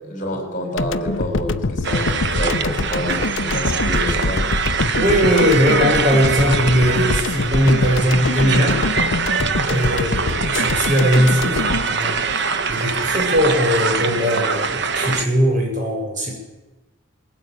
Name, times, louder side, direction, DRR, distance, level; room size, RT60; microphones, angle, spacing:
voice 1, 0.0-4.4, left 1 dB, 40° left, 4 dB, 4.9 m, -28 dB
sound 1, 0.8-13.0, left 3 dB, 65° left, 0.7 m, -24 dB
sound 2, 1.8-15.2, right 5 dB, 55° right, 1.1 m, -23 dB
voice 2, 4.9-9.4 9.6-16.4, equal, 40° right, 0 dB, 6.7 m, -19 dB
21.0 x 17.5 x 9.1 m, 1.1 s
head